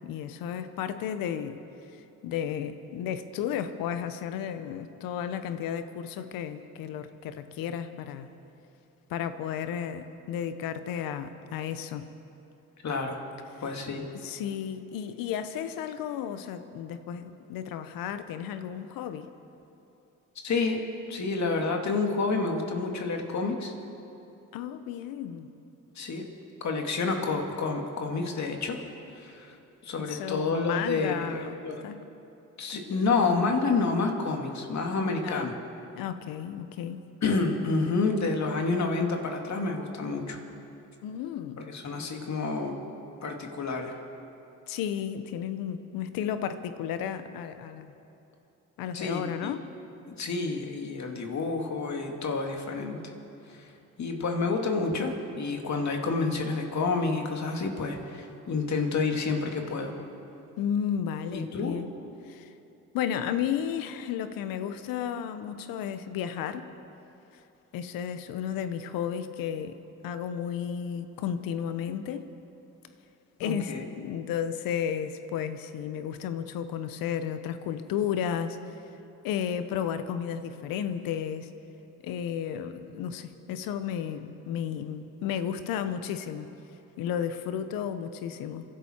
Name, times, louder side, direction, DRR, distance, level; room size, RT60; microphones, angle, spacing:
voice 1, 0.0-1.6 2.2-8.3 9.1-12.1 14.1-19.3 24.5-25.5 30.0-31.6 31.8-32.0 35.0-35.5 35.9-37.0 41.0-41.6 44.7-47.9 48.8-49.6 60.6-61.9 62.2-62.5 62.9-66.6 67.7-69.8 70.0-72.3 73.4-78.6 79.2-81.5 82.0-86.5 87.0-88.6, left 8 dB, 80° left, 11 dB, 0.9 m, -33 dB
voice 2, 12.8-13.2 13.6-14.1 20.4-23.7 26.0-26.2 26.6-28.8 29.2-29.6 29.8-31.8 32.6-35.5 37.2-40.4 41.7-42.8 43.2-43.9 48.9-49.5 50.1-53.0 53.5-53.7 54.0-59.9 61.3-61.8 73.4-73.9, left 3 dB, 55° left, 3 dB, 2.3 m, -29 dB
27.5 x 11.5 x 4.5 m, 2.9 s
supercardioid pair, 70°, 34 cm